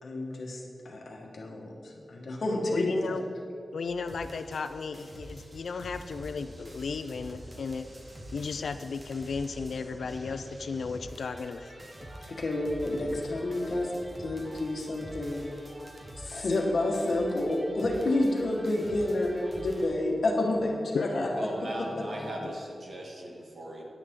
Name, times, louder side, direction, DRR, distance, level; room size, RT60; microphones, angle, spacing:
voice 1, 0.0-3.2 12.3-15.4 16.1-21.3, left 1 dB, 60° left, -1 dB, 1.5 m, -29 dB
voice 2, 2.7-3.2 3.7-7.9 8.3-11.8 20.9-21.3 22.4-22.6, left 4 dB, 75° left, 9 dB, 0.4 m, -35 dB
sound 1, 3.9-19.9, right 1 dB, 25° right, 1.0 m, -46 dB
sound 2, 19.9-22.5, left 2 dB, 35° left, 0.9 m, -44 dB
voice 3, 21.3-23.8, right 1 dB, 50° right, -1 dB, 1.6 m, -39 dB
10.0 x 9.9 x 3.7 m, 2.5 s
wide cardioid pair, 170°, 0 cm